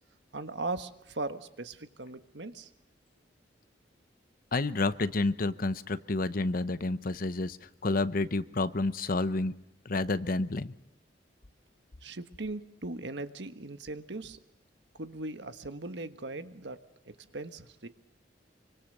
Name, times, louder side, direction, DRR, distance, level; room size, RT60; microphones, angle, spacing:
voice 1, 0.3-2.7 12.0-14.4 15.0-17.9, right 2 dB, 70° right, 10 dB, 1.4 m, -39 dB
voice 2, 4.5-7.6 7.8-9.5 9.8-10.7, left 2 dB, 55° left, 14 dB, 0.9 m, -29 dB
26.0 x 25.0 x 6.7 m, 0.77 s
head